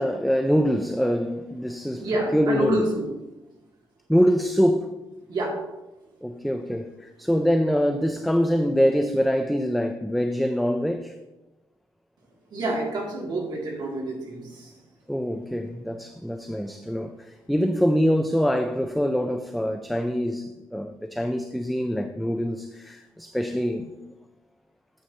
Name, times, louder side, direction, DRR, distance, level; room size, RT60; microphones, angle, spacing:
voice 1, 0.0-2.8 4.1-4.9 6.2-11.1 15.1-24.1, equal, ahead, 0.3 m, -24 dB
voice 2, 2.0-3.1 5.3-5.6 12.5-14.8, right 1 dB, 55° right, 2.2 m, -27 dB
9.2 x 8.0 x 2.7 m
wide cardioid pair, 160°, 9 cm